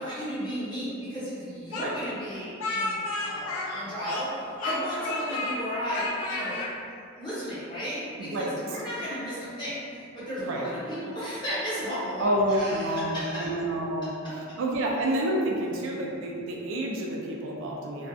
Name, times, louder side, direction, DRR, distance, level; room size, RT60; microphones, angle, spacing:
voice 1, 0.0-6.6 7.2-13.5, equal, 20° left, -12 dB, 0.9 m, -34 dB
Speech, 1.7-4.3 4.6-5.6 5.9-6.7, left 2 dB, 80° left, 0.4 m, -32 dB
voice 2, 8.2-8.6 10.5-10.7 12.2-14.1 14.4-18.1, right 1 dB, 65° right, -2 dB, 0.3 m, -29 dB
2.5 x 2.2 x 2.3 m, 2.4 s
head